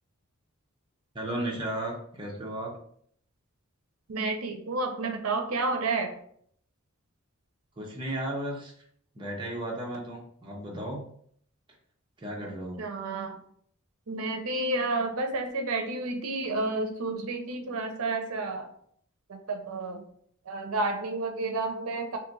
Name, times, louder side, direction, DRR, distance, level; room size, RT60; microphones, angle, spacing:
voice 1, 1.1-2.8 7.8-8.7 9.1-11.1 12.2-12.8, right 1 dB, 20° right, -2 dB, 0.8 m, -34 dB
voice 2, 4.1-6.1 12.4-12.5 12.8-13.4 14.1-18.7 19.3-20.0 20.5-22.2, right 2 dB, 80° right, 4 dB, 0.5 m, -30 dB
2.8 x 2.5 x 3.8 m, 0.64 s
head